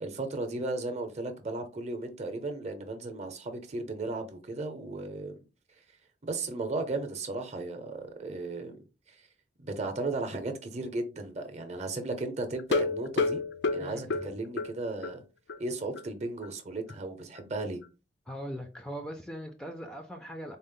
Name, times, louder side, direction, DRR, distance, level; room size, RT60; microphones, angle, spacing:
voice 1, 0.0-5.4 6.2-8.8 9.1-9.2 9.6-13.4 13.7-15.2 15.6-17.8, right 2 dB, 40° right, 0.7 m, -35 dB
sound 1, 12.6-15.2 15.5-15.6 16.0-16.1 16.4-16.5, left 3 dB, 80° left, 0.5 m, -30 dB
voice 2, 13.8-14.3 18.3-20.6, equal, 5° left, 0.4 m, -40 dB
4.0 x 2.0 x 3.6 m
head